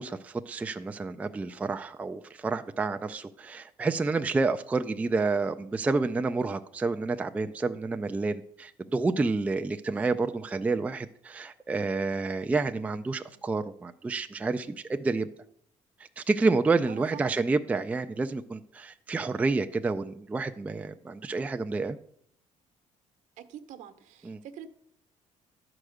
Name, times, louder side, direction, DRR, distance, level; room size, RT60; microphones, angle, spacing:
voice 1, 0.0-15.3 16.2-22.0 24.2-24.4, right 3 dB, 10° right, 7 dB, 0.3 m, -29 dB
voice 2, 13.1-13.4 16.9-17.4 23.4-24.7, right 9 dB, 65° right, 9 dB, 1.0 m, -46 dB
11.5 x 4.9 x 7.8 m, 0.67 s
cardioid pair, 165°, 14 cm